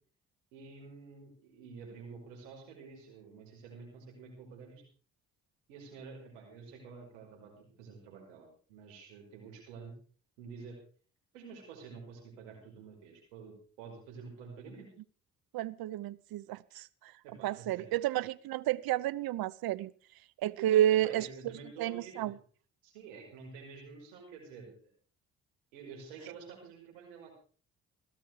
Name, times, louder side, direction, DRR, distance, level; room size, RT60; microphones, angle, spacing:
voice 1, 0.5-4.8 5.7-9.9 10.4-10.8 11.3-14.9 17.2-17.9 20.6-22.4 22.8-24.9 25.7-27.3, right 5 dB, 85° right, 1 dB, 5.4 m, -49 dB
voice 2, 15.5-17.1 17.4-19.9 20.4-21.5 21.8-22.4, right 13 dB, 65° right, 19 dB, 0.8 m, -31 dB
16.5 x 13.5 x 4.8 m, 0.42 s
hypercardioid pair, 45°, 38 cm